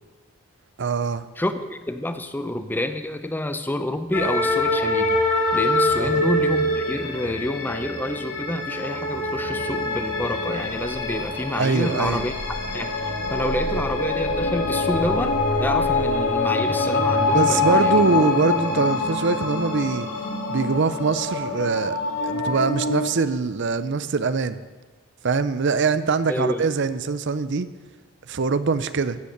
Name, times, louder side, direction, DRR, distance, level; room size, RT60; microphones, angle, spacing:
voice 1, 0.8-1.3 6.0-6.2 11.6-12.3 13.7-13.9 17.3-20.1 20.5-24.6 25.2-27.7 28.3-29.2, right 4 dB, 55° right, 13 dB, 0.6 m, -23 dB
voice 2, 1.4-12.3 12.7-17.9 26.3-26.7, left 1 dB, 10° left, 10 dB, 0.5 m, -28 dB
sound 1, 4.1-23.1, left 2 dB, 80° left, 2.4 m, -24 dB
15.0 x 8.2 x 6.7 m, 1.3 s
head